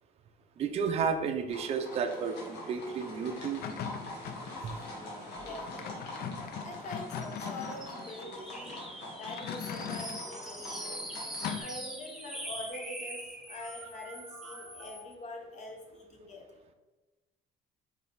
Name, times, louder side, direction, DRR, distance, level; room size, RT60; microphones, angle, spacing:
voice 1, 0.6-3.6 4.6-4.7, right 6 dB, 40° right, 5 dB, 0.4 m, -32 dB
sound 1, 1.5-11.5, left 1 dB, 80° left, 1.3 m, -44 dB
sound 2, 3.4-4.6 5.6-8.3 9.2-10.3 11.4-11.6, left 7 dB, 65° left, 0.4 m, -40 dB
voice 2, 5.4-6.1 6.6-8.8 9.2-11.1 11.6-16.5, left 2 dB, 45° left, 1 dB, 1.0 m, -44 dB
sound 3, 7.2-15.1, right 1 dB, ahead, 0.7 m, -43 dB
4.5 x 3.3 x 3.3 m, 1.2 s
cardioid pair, 110°, 17 cm